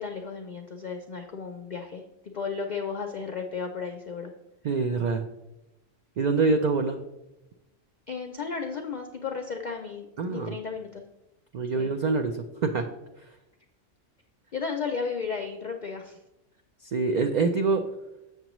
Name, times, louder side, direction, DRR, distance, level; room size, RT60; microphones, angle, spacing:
voice 1, 0.0-4.3 8.1-11.0 11.7-11.9 14.5-16.2, left 5 dB, 55° left, 4 dB, 0.5 m, -34 dB
voice 2, 4.6-5.3 6.2-7.0 10.2-10.6 11.5-12.8 13.2-13.4 16.8-17.8, right 4 dB, 65° right, 5 dB, 0.4 m, -25 dB
7.3 x 6.7 x 3.0 m, 0.94 s
omnidirectional pair, 1.3 m